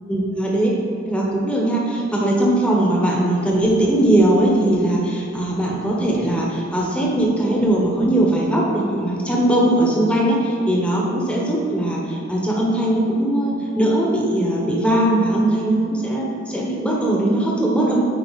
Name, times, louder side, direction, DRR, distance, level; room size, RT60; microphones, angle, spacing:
voice 1, 0.1-0.7 1.0-18.0, right 1 dB, 5° left, -3 dB, 1.0 m, -20 dB
9.3 x 4.2 x 4.0 m, 2.7 s
head